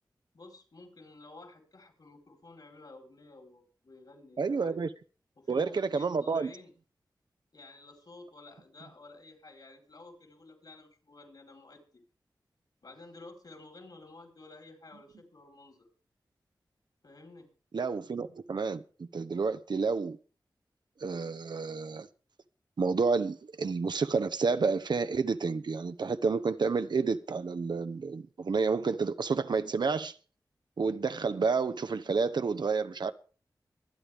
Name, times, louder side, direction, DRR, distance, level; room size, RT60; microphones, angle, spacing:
voice 1, 0.3-4.8 5.4-6.7 7.5-12.0 12.8-15.9 17.0-17.5, left 2 dB, 60° left, 4.0 m, -52 dB
voice 2, 4.4-4.9 5.5-6.5 17.7-20.2 21.0-22.1 22.8-30.1 30.8-33.1, right 4 dB, 70° right, 0.8 m, -30 dB
24.0 x 8.8 x 3.5 m
cardioid pair, 45°, 8 cm